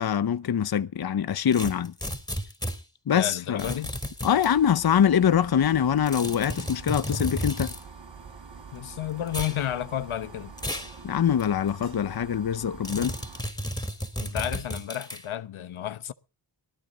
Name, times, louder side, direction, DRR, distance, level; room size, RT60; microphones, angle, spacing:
voice 1, 0.0-1.9 3.1-3.8 4.2-7.7 11.0-13.1, left 8 dB, 50° left, 0.9 m, -24 dB
sound 1, 1.5-2.8 3.6-4.5 6.1-7.8 9.3-9.6 10.6-10.9 11.4-11.5 12.8-15.2, equal, 10° left, 3.4 m, -33 dB
voice 2, 3.1-3.9 8.7-10.5 14.2-16.1, left 11 dB, 75° left, 1.1 m, -31 dB
sound 2, 4.3-13.4, right 5 dB, 60° right, 5.2 m, -45 dB
19.5 x 13.5 x 4.0 m
cardioid pair, 50°, 48 cm